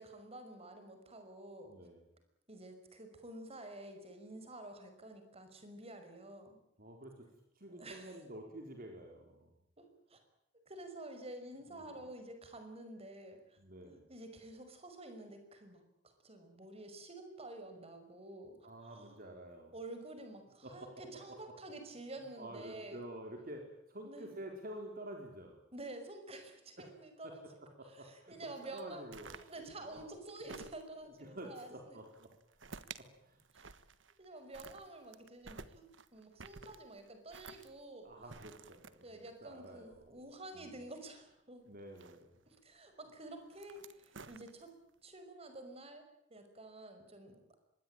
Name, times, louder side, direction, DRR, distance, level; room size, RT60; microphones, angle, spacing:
voice 1, 0.0-1.7 2.5-6.6 7.7-8.2 9.8-10.2 10.7-13.6 13.8-19.2 19.7-23.0 24.0-24.3 25.7-27.4 27.8-31.9 33.5-33.7 34.2-35.8 36.1-38.1 38.4-38.5 39.0-41.7 42.5-44.7 45.0-46.0 46.3-47.6, right 2 dB, 30° right, 7 dB, 5.7 m, -50 dB
voice 2, 1.7-2.0 6.8-7.3 7.5-9.5 11.7-12.1 13.6-14.0 18.6-19.7 20.6-20.9 22.4-25.6 26.8-27.0 27.2-27.3 27.8-28.4 28.6-29.4 29.8-30.1 31.0-32.3 32.6-33.7 38.0-40.1 40.5-40.8 41.7-42.3 42.9-43.0, right 1 dB, 50° right, 3 dB, 4.5 m, -49 dB
sound 1, 28.8-31.2 32.0-33.1 33.4-34.3 34.5-40.7 41.8-42.6 43.4-44.9, right 5 dB, 70° right, 1.5 m, -53 dB
25.5 x 21.0 x 9.1 m, 0.78 s
head